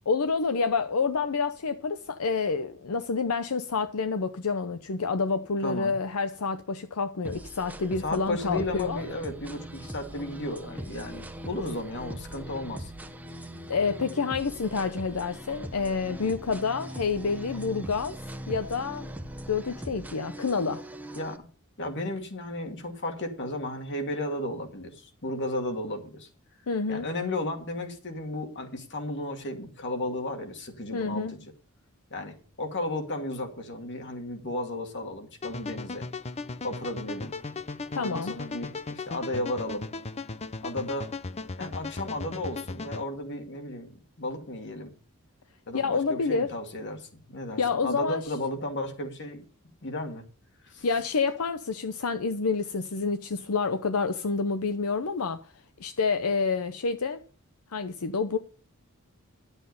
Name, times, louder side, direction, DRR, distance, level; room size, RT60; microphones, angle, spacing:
voice 1, 0.1-9.0 13.7-18.2 18.5-19.1 19.5-20.8 26.7-27.1 30.9-31.3 37.9-38.4 45.7-46.5 47.6-48.2 50.8-55.5 55.8-57.2 57.7-58.4, left 4 dB, 80° left, 0.7 m, -28 dB
voice 2, 5.6-5.9 8.0-12.9 21.1-21.4 21.8-26.3 26.9-31.4 32.1-36.1 36.6-37.3 37.9-39.9 40.6-41.1 41.6-43.9 44.2-44.9 45.7-49.4 49.8-50.2 50.6-50.9, left 1 dB, 55° left, 2.3 m, -34 dB
sound 1, 7.2-21.4, right 1 dB, 5° right, 1.1 m, -41 dB
sound 2, 35.4-43.0, left 3 dB, 30° left, 0.5 m, -37 dB
11.5 x 8.1 x 5.4 m
head